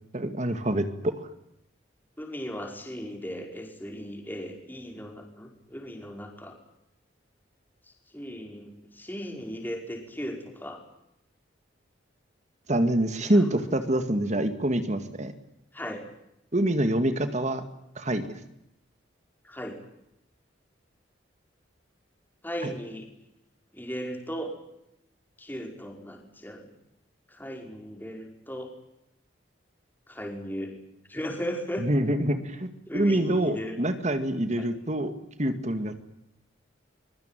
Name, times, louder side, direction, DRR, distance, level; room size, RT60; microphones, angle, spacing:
voice 1, 0.1-1.2 12.7-15.3 16.5-17.6 18.0-18.4 22.6-22.7 31.8-32.7 32.9-35.1 35.4-36.0, right 1 dB, 40° right, 9 dB, 2.1 m, -26 dB
voice 2, 2.2-6.5 8.1-10.8 13.2-13.5 15.7-16.0 19.4-19.8 22.4-23.1 23.7-24.5 25.4-26.7 27.3-28.7 30.1-30.7 31.1-31.9 32.9-33.8 34.6-34.7, equal, 10° left, 2 dB, 5.4 m, -37 dB
24.0 x 23.0 x 9.2 m, 0.81 s
head